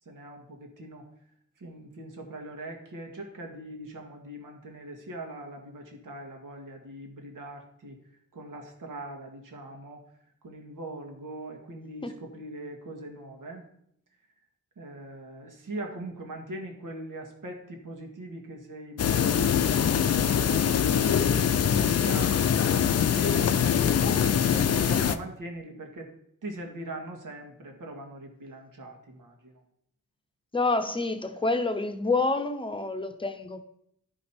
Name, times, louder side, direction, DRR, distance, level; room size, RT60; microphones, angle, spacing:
voice 1, 0.1-1.0 1.6-8.0 8.3-10.0 10.4-13.7 14.8-26.1 26.4-29.6, right 1 dB, 85° right, 2 dB, 1.8 m, -41 dB
sound 1, 19.0-25.2, left 8 dB, 55° left, 0.5 m, -23 dB
voice 2, 30.5-33.6, left 3 dB, 15° left, 8 dB, 0.7 m, -28 dB
11.5 x 5.2 x 4.3 m, 0.72 s
wide cardioid pair, 120°, 31 cm